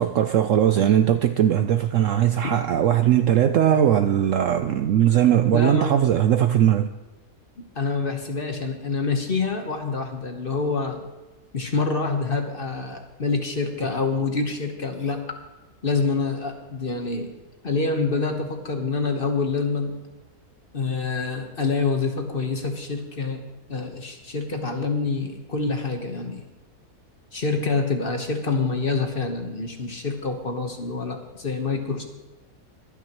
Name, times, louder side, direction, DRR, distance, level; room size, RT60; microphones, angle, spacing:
voice 1, 0.0-6.9, right 10 dB, 70° right, 0.8 m, -19 dB
voice 2, 5.5-5.9 7.7-11.0 11.5-15.2 15.8-17.3 17.6-20.0 20.7-23.4 23.7-26.4 27.3-32.0, left 4 dB, 40° left, 1.2 m, -26 dB
24.0 x 9.3 x 3.0 m
omnidirectional pair, 1.7 m